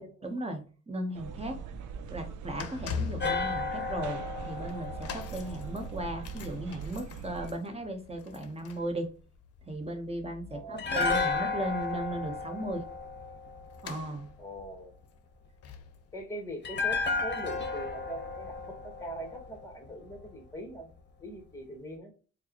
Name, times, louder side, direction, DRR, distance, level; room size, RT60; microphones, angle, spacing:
voice 1, 0.0-1.6 2.1-9.1 9.6-12.8 13.8-14.3, right 1 dB, 20° right, 4 dB, 1.2 m, -36 dB
sound 1, 1.1-7.5, right 6 dB, 75° right, 0.6 m, -42 dB
sound 2, 1.5-17.9 18.1-18.4 19.2-19.3, left 6 dB, 55° left, 0.7 m, -45 dB
sound 3, 3.2-6.4 10.8-14.0 16.6-19.9 20.1-20.3, left 4 dB, 35° left, 1.0 m, -33 dB
voice 2, 10.5-10.9 14.4-15.0 16.1-20.9 21.2-22.1, right 1 dB, 10° left, 3 dB, 1.5 m, -42 dB
4.4 x 2.4 x 3.0 m, 0.36 s
cardioid pair, 90°, 30 cm